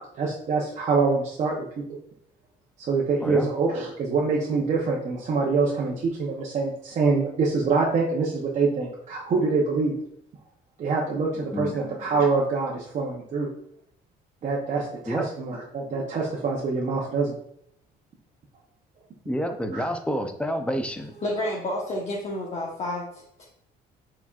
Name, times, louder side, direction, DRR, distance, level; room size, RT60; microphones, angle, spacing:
voice 1, 0.0-1.5 2.9-9.9 10.8-13.5 14.4-17.3 19.7-19.8, right 4 dB, 45° right, -3 dB, 0.7 m, -25 dB
voice 2, 19.3-21.1, equal, 5° left, 7 dB, 0.5 m, -28 dB
voice 3, 21.1-23.0, left 1 dB, 40° left, -4 dB, 1.0 m, -29 dB
4.7 x 4.2 x 2.3 m, 0.70 s
cardioid pair, 110°, 17 cm